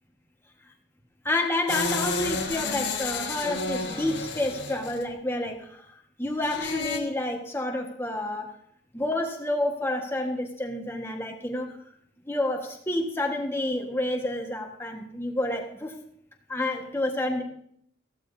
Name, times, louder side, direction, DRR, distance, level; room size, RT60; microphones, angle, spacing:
voice 1, 1.2-8.5 8.9-11.8 12.3-16.0 16.5-17.4, left 1 dB, 15° left, 2 dB, 1.5 m, -29 dB
sound 1, 1.7-5.0 6.4-7.0, left 4 dB, 70° left, 1.5 m, -31 dB
15.0 x 13.5 x 2.7 m, 0.67 s
head